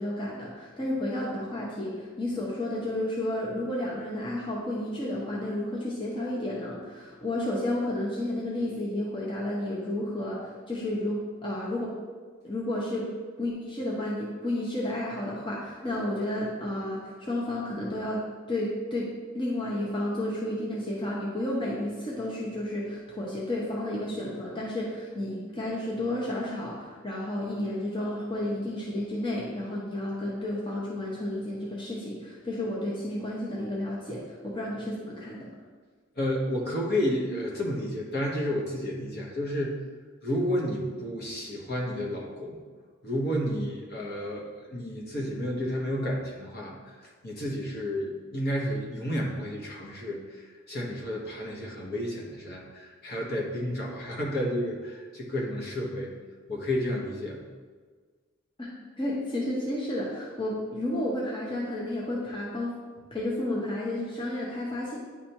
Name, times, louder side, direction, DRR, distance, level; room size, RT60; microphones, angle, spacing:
voice 1, 0.0-11.9 12.4-13.1 13.4-18.2 18.5-19.1 19.3-35.5 58.6-58.7 59.0-62.7 63.1-65.0, left 1 dB, 25° left, -4 dB, 0.8 m, -31 dB
voice 2, 36.2-39.7 40.2-42.6 43.0-56.1 56.5-57.5, equal, 50° left, -2 dB, 1.1 m, -31 dB
9.8 x 3.3 x 2.9 m, 1.5 s
head